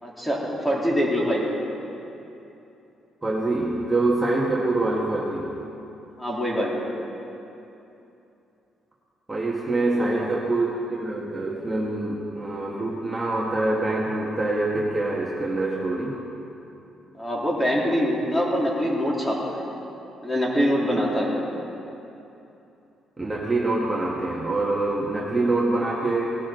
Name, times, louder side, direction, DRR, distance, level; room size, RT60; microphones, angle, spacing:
voice 1, 0.0-1.4 6.2-6.9 10.1-10.3 17.2-19.6 20.2-21.3, equal, 10° left, -4 dB, 3.2 m, -24 dB
voice 2, 3.2-5.5 9.3-16.2 20.9-21.0 23.2-26.4, right 2 dB, 20° right, -4 dB, 1.6 m, -25 dB
18.5 x 11.5 x 3.9 m, 2.9 s
cardioid pair, 90°, 0 cm